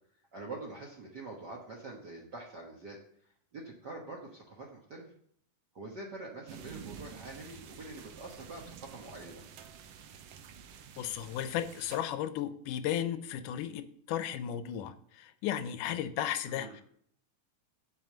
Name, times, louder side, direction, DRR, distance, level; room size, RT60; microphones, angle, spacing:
voice 1, 0.3-5.1 5.7-9.4 16.4-16.8, right 2 dB, 55° right, -1 dB, 1.2 m, -45 dB
sound 1, 6.5-12.0, right 7 dB, 80° right, 1.4 m, -49 dB
voice 2, 11.0-16.8, left 10 dB, 80° left, 11 dB, 2.1 m, -35 dB
8.0 x 5.6 x 7.5 m, 0.63 s
omnidirectional pair, 3.7 m